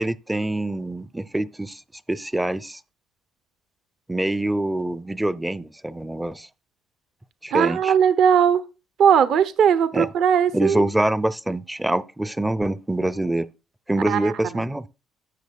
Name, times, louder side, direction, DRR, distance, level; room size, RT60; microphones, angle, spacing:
voice 1, 0.0-1.8 2.1-2.8 4.1-6.5 7.4-7.9 9.9-10.1 10.5-13.5 13.9-14.9, right 1 dB, 5° right, 0.5 m, -25 dB
voice 2, 7.5-8.6 9.0-10.8 14.0-14.3, right 8 dB, 60° right, 0.8 m, -18 dB
12.5 x 7.8 x 2.3 m
cardioid pair, 115°, 0 cm